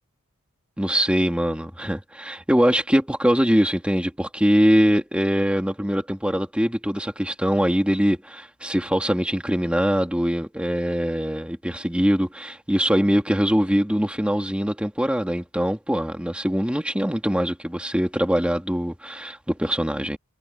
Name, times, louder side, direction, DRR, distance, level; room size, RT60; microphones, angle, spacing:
voice 1, 0.8-20.2, equal, 5° right, 2.6 m, -22 dB
head